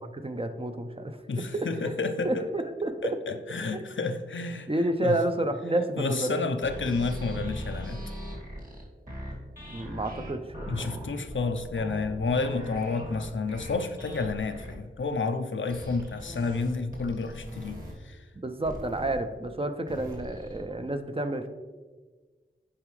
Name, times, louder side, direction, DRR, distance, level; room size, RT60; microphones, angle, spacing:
voice 1, 0.1-1.9 2.2-3.2 3.7-3.8 4.7-6.5 9.7-11.2 18.4-21.5, right 1 dB, 30° right, 7 dB, 0.6 m, -30 dB
voice 2, 1.3-2.5 3.0-4.7 5.0-5.2 6.0-8.0 10.7-18.3, left 4 dB, 75° left, 7 dB, 0.6 m, -30 dB
sound 1, 6.6-14.7 15.7-17.9 18.6-19.2 19.9-20.6, equal, 45° right, 2.2 m, -40 dB
8.5 x 5.0 x 3.2 m, 1.4 s
wide cardioid pair, 40°, 20 cm